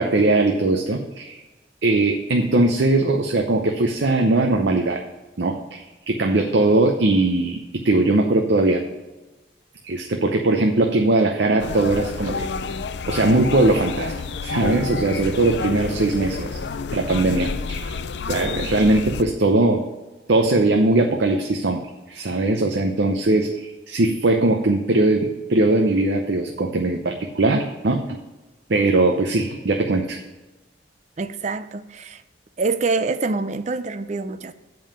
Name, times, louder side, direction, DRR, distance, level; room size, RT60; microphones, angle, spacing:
voice 1, 0.0-1.4 1.8-5.0 5.4-8.8 9.8-12.5 13.1-14.1 14.4-16.6 16.9-18.0 18.3-19.8 20.3-21.8 22.1-28.2 28.7-30.2, right 2 dB, 75° right, 0.7 m, -20 dB
sound 1, 11.6-19.2, left 4 dB, 70° left, 0.5 m, -29 dB
voice 2, 31.2-32.2 32.6-34.5, right 3 dB, 40° right, 0.5 m, -25 dB
7.5 x 5.5 x 6.9 m
head